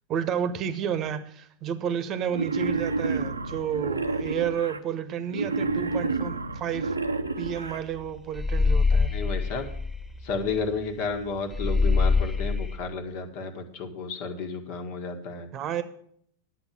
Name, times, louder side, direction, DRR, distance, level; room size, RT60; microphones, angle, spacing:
voice 1, 0.1-7.0 7.4-9.1 15.5-15.8, right 8 dB, 30° right, 1.1 m, -31 dB
Wild animals, 2.3-4.8 5.3-7.8, right 3 dB, 80° right, 0.8 m, -29 dB
sound 1, 7.5-7.7 7.9-10.8 11.1-11.2 11.5-12.8, left 4 dB, 5° left, 1.7 m, -24 dB
voice 2, 9.1-9.7 10.2-15.5, left 4 dB, 45° left, 1.7 m, -32 dB
11.0 x 7.9 x 7.4 m
figure-of-eight pair, 90°, 0 cm